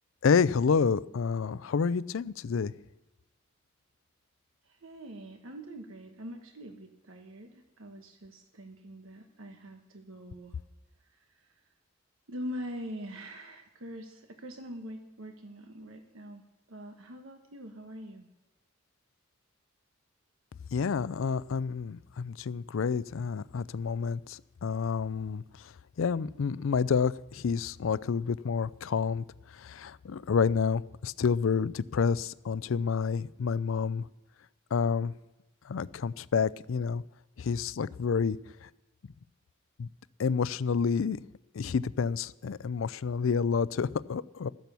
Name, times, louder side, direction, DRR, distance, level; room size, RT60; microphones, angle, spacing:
voice 1, 0.2-2.7 20.7-25.7 26.0-29.2 29.5-34.1 34.7-35.1 35.7-37.0 37.4-38.7 39.8-39.9 40.2-41.2 41.5-44.5, left 5 dB, 75° left, 19 dB, 0.4 m, -29 dB
voice 2, 4.6-10.6 11.1-11.5 12.3-16.4 16.7-18.3, equal, 85° right, 5 dB, 1.2 m, -43 dB
13.5 x 10.5 x 6.9 m, 1.0 s
head